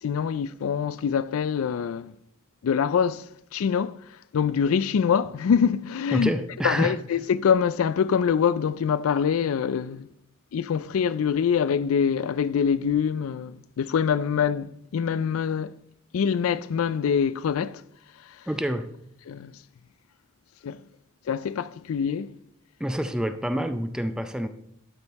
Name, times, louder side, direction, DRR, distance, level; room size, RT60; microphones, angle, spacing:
voice 1, 0.0-2.1 2.6-6.3 6.6-10.1 10.5-15.8 16.1-17.8 18.2-18.5 19.3-19.6 20.6-20.8 21.3-22.4, left 7 dB, 85° left, 0.4 m, -25 dB
voice 2, 6.1-7.0 18.5-18.9 22.8-24.5, equal, 5° right, 0.5 m, -27 dB
12.5 x 5.2 x 4.1 m
head